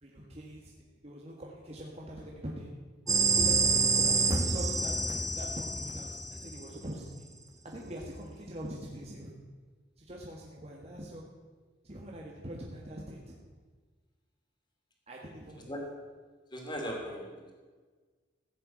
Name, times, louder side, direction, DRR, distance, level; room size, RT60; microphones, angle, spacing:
voice 1, 0.0-2.7 3.2-7.3 7.6-9.3 10.0-11.2 11.8-13.4 15.1-15.9, equal, 35° right, -2 dB, 1.7 m, -43 dB
voice 2, 3.1-3.5 15.5-15.8 16.5-17.5, equal, 25° left, 0 dB, 3.1 m, -38 dB
sound 1, 3.1-6.8, right 4 dB, 20° right, 1.2 m, -28 dB
15.5 x 8.1 x 8.0 m, 1.4 s
head